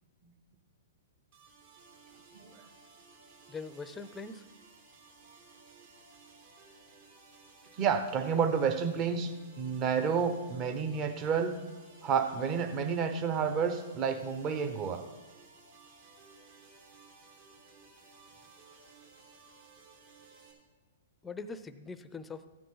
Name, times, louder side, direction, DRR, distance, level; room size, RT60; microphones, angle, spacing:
sound 1, 1.3-20.5, right 4 dB, 65° right, 3.3 m, -57 dB
voice 1, 3.5-4.5 21.2-22.4, left 4 dB, 10° left, 11 dB, 0.6 m, -42 dB
voice 2, 7.8-11.6 12.0-15.0, right 6 dB, 35° right, 8 dB, 1.0 m, -30 dB
14.5 x 9.2 x 3.9 m, 1.3 s
hypercardioid pair, 125°, 0 cm